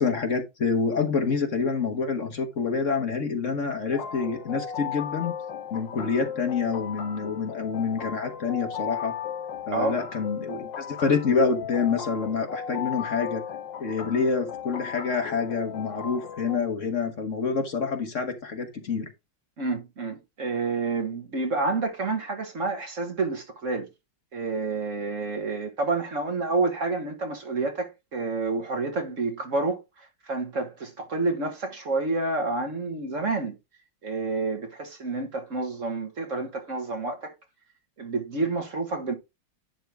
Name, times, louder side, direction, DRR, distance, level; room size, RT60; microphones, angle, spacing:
voice 1, 0.0-5.4 5.7-9.1 9.7-13.4 13.8-19.1, left 5 dB, 45° left, 1.4 m, -27 dB
sound 1, 3.9-16.6, left 8 dB, 85° left, 1.6 m, -36 dB
voice 2, 19.6-23.9 24.3-33.5 34.0-37.3 38.0-39.1, right 3 dB, 45° right, 1.5 m, -29 dB
10.5 x 3.6 x 4.8 m
omnidirectional pair, 1.9 m